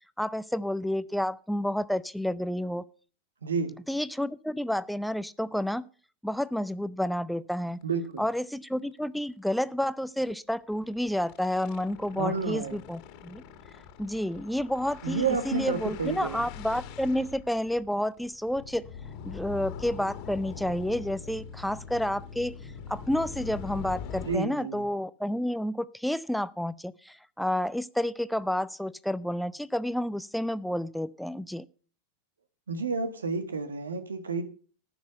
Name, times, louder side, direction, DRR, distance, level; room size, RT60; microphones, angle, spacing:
voice 1, 0.2-2.8 3.9-5.9 6.2-7.8 8.2-13.4 14.0-18.9 19.2-22.5 22.9-31.7, left 1 dB, ahead, 16 dB, 0.5 m, -30 dB
voice 2, 3.4-3.8 7.8-8.2 12.1-12.8 15.0-16.5 24.2-24.8 32.7-34.4, right 4 dB, 80° right, 12 dB, 1.5 m, -30 dB
sound 1, 7.7-7.8 8.2-8.3 8.6-8.7 9.0-9.2 10.5-24.4, left 6 dB, 50° left, 1.8 m, -43 dB
14.5 x 6.1 x 6.7 m, 0.42 s
figure-of-eight pair, 90°, 0 cm